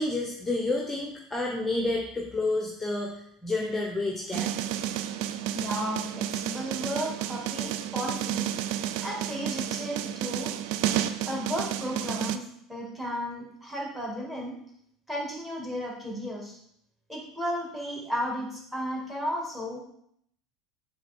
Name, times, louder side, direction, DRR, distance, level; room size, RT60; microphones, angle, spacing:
voice 1, 0.0-4.5, left 2 dB, 10° left, 0 dB, 1.0 m, -29 dB
sound 1, 4.3-12.4, right 11 dB, 60° right, 0.4 m, -31 dB
voice 2, 5.5-8.5 9.0-10.5 11.3-14.6 15.1-16.6 17.1-19.8, equal, 5° right, -2 dB, 2.3 m, -34 dB
7.2 x 3.5 x 4.4 m, 0.70 s
figure-of-eight pair, 75°, 2 cm